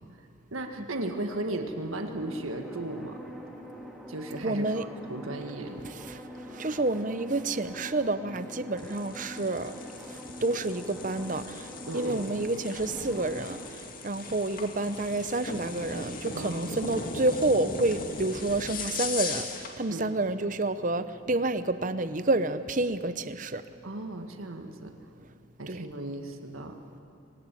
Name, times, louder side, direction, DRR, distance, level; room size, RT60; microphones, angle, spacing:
voice 1, 0.5-3.2 4.1-5.8 11.9-12.3 16.3-16.8 19.9-20.0 23.8-24.9 25.6-26.8, right 2 dB, 90° right, 4 dB, 1.8 m, -36 dB
sound 1, 2.2-13.7, equal, ahead, 2.3 m, -44 dB
voice 2, 4.4-4.9 5.8-9.7 10.1-23.6 25.7-25.8, right 2 dB, 40° right, 12 dB, 0.8 m, -29 dB
sound 2, 8.8-19.8, left 3 dB, 45° left, 2.3 m, -39 dB
24.0 x 20.0 x 9.2 m, 2.7 s
head